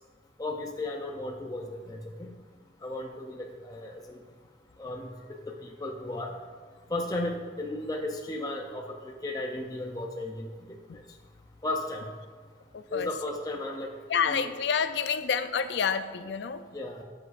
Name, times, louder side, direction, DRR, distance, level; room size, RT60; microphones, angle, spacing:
voice 1, 0.4-2.3 2.8-4.2 4.8-5.1 5.6-6.3 6.9-10.5 10.9-11.0 11.6-12.0 12.9-13.9 14.3-14.5 16.7-17.0, left 2 dB, 20° left, 1 dB, 0.5 m, -35 dB
voice 2, 12.7-13.1 14.1-16.6, left 6 dB, 70° left, 11 dB, 0.4 m, -28 dB
12.5 x 6.8 x 2.5 m, 1.5 s
head